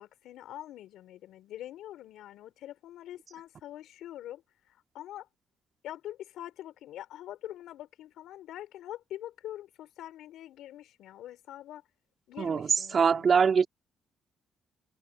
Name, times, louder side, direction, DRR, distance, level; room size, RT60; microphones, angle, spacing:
voice 1, 0.0-5.3 5.8-11.8 12.3-13.4, left 13 dB, 85° left, 6.0 m, -44 dB
voice 2, 12.4-13.7, right 6 dB, 45° right, 4.6 m, -23 dB
cardioid pair, 90°, 0 cm